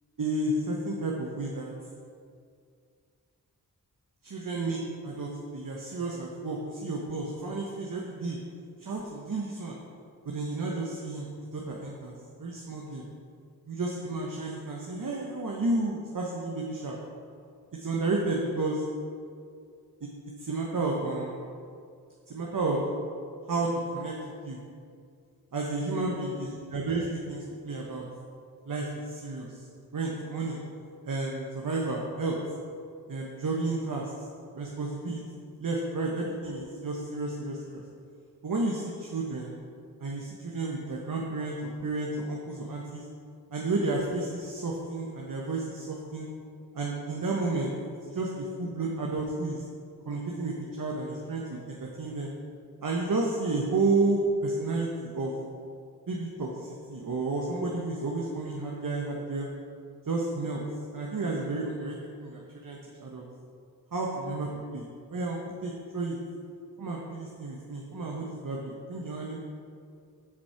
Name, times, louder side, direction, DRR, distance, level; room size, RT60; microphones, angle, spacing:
voice 1, 0.2-1.7 4.2-8.4 8.8-9.8 10.2-13.0 13.7-17.0 17.8-18.8 20.0-20.1 20.4-21.4 22.3-22.8 23.5-24.2 24.4-24.6 25.5-28.0 28.6-29.7 29.9-30.6 31.0-32.4 33.1-34.3 34.5-35.2 35.6-37.8 38.4-39.5 40.0-41.6 41.8-43.0 43.5-46.3 46.7-47.7 48.1-49.6 50.0-52.3 52.8-55.4 56.1-59.5 60.1-60.6 60.9-63.2 63.9-64.8 65.1-66.2 66.8-69.4, right 2 dB, 60° right, -2 dB, 1.2 m, -31 dB
8.2 x 6.1 x 5.8 m, 2.3 s
cardioid pair, 45°, 37 cm